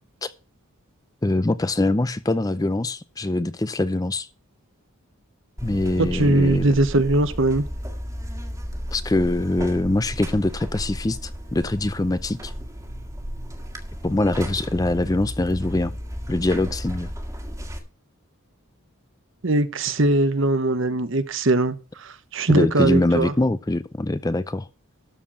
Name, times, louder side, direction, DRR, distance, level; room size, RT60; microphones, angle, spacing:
voice 1, 1.2-4.3 5.6-6.7 8.9-12.5 14.0-16.0 16.3-17.1 22.5-24.7, left 2 dB, 15° left, 0.4 m, -23 dB
Buzz, 5.6-17.8, equal, 15° right, 1.6 m, -34 dB
voice 2, 6.0-7.7 19.4-23.3, right 2 dB, 60° right, 1.0 m, -21 dB
12.5 x 4.5 x 7.4 m
head